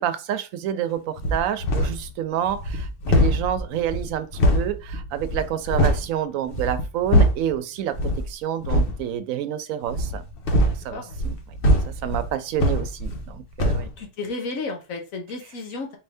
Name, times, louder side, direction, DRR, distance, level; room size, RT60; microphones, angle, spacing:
voice 1, 0.0-10.2 10.6-11.4 11.9-13.9, right 10 dB, 80° right, 1.0 m, -28 dB
sound 1, 1.2-2.1 2.4-6.1 6.5-7.5 7.9-8.3 8.6-9.0 9.9-13.3 13.6-13.9, equal, 50° left, 0.9 m, -22 dB
voice 2, 10.6-11.0 14.0-16.0, left 3 dB, 80° left, 1.4 m, -33 dB
4.5 x 2.7 x 3.4 m
omnidirectional pair, 1.4 m